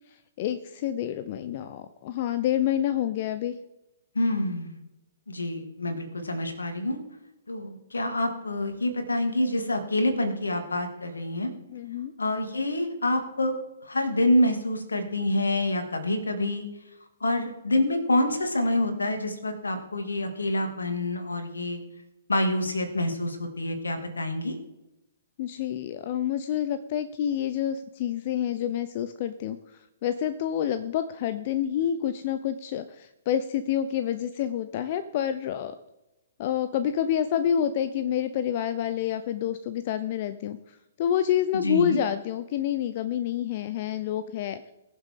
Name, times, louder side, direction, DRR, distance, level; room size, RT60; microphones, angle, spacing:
voice 1, 0.1-3.6 11.7-12.1 25.4-35.7 36.4-44.7, left 10 dB, 45° left, 11 dB, 0.6 m, -28 dB
voice 2, 4.1-4.8 5.3-7.0 7.5-11.5 12.2-13.5 13.8-16.7 17.2-21.8 22.3-24.5 41.6-42.0, left 1 dB, 80° left, 6 dB, 2.4 m, -27 dB
21.5 x 7.5 x 3.7 m, 0.95 s
figure-of-eight pair, 120°, 0 cm